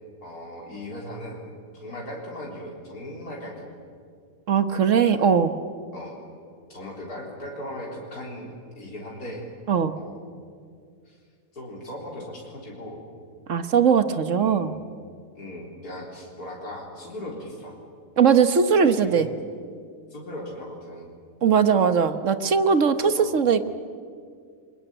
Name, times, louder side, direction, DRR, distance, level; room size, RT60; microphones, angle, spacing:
voice 1, 0.2-1.4 1.7-3.8 5.0-5.3 5.9-6.2 6.7-9.5 10.0-10.2 11.1-11.2 11.5-13.0 14.4-14.8 15.3-17.8 18.8-19.3 20.1-21.1 21.7-21.9 23.0-23.4, left 1 dB, 85° left, -2 dB, 4.4 m, -38 dB
voice 2, 4.5-5.5 9.7-9.9 13.5-14.7 18.2-19.3 21.4-23.7, right 6 dB, 55° right, 10 dB, 1.4 m, -20 dB
28.0 x 23.0 x 9.0 m, 2.2 s
omnidirectional pair, 1.6 m